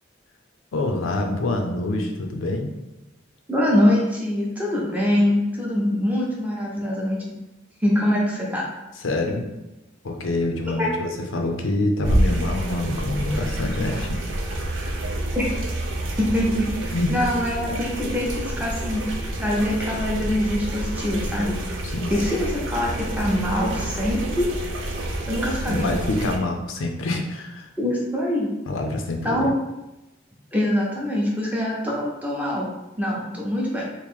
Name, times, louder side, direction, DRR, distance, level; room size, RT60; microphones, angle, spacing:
voice 1, 0.7-2.7 9.0-9.5 10.0-14.2 16.9-17.1 19.4-19.5 21.8-22.1 25.7-27.7 28.7-29.5, left 2 dB, 85° left, 2 dB, 0.5 m, -26 dB
voice 2, 3.5-7.2 7.8-8.6 10.8-10.9 15.3-15.5 16.2-21.6 22.1-24.5 25.3-25.9 27.8-28.5 29.2-29.5 30.5-32.7 33.0-33.9, left 1 dB, 10° right, -3 dB, 0.6 m, -24 dB
sound 1, 12.0-26.4, right 1 dB, 70° right, 0.5 m, -28 dB
3.0 x 2.5 x 3.5 m, 0.99 s
head